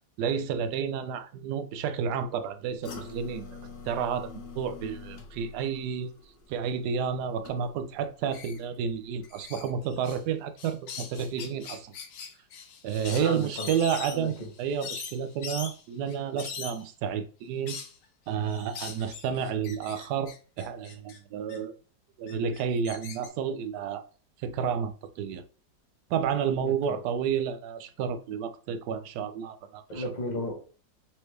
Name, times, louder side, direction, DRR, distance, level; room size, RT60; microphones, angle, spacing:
voice 1, 0.2-3.6 3.9-6.1 6.5-11.9 12.8-17.8 18.3-21.7 22.2-24.0 24.4-25.4 26.1-30.0, right 7 dB, 75° right, 1.1 m, -31 dB
sound 1, 2.8-8.0 8.4-8.8 9.2-9.3, left 5 dB, 90° left, 1.6 m, -46 dB
sound 2, 8.3-8.6 9.2-10.2 10.6-16.9 17.7-18.0 18.5-21.2 21.5-21.6 22.3-23.3, left 6 dB, 65° left, 0.9 m, -41 dB
voice 2, 13.1-13.7 14.1-14.5 26.6-27.0 29.9-30.6, left 1 dB, 30° left, 1.1 m, -34 dB
4.2 x 3.2 x 3.2 m
omnidirectional pair, 1.9 m